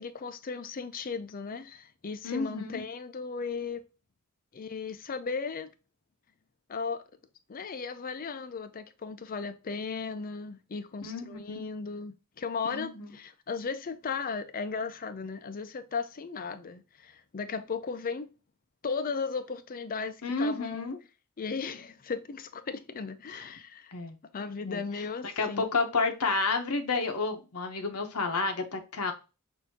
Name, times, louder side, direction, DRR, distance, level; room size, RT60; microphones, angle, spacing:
voice 1, 0.0-3.8 4.5-5.7 6.7-7.0 7.5-18.3 18.8-20.9 21.4-23.9 24.3-25.7, left 5 dB, 40° left, 0.5 m, -36 dB
voice 2, 2.2-2.8 11.0-11.6 12.7-13.1 20.2-21.0 23.3-23.4 23.9-24.2 24.7-24.8 25.2-29.1, left 3 dB, 85° left, 0.9 m, -30 dB
6.2 x 2.7 x 2.8 m
head